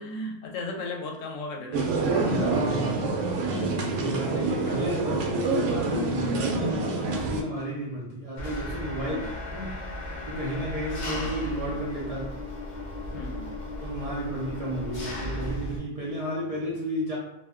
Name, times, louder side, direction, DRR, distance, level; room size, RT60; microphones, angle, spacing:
voice 1, 0.0-1.9 9.0-9.3 13.1-13.6, left 2 dB, 90° left, 2 dB, 1.0 m, -36 dB
sound 1, 1.7-7.4, right 3 dB, 80° right, 0.9 m, -27 dB
voice 2, 2.3-3.0 3.9-9.2 9.5-9.8 10.3-12.4 13.8-17.2, equal, 40° right, -6 dB, 0.5 m, -32 dB
Engine, 8.4-15.8, left 1 dB, 45° left, 0.7 m, -35 dB
2.5 x 2.2 x 3.5 m, 0.86 s
omnidirectional pair, 1.3 m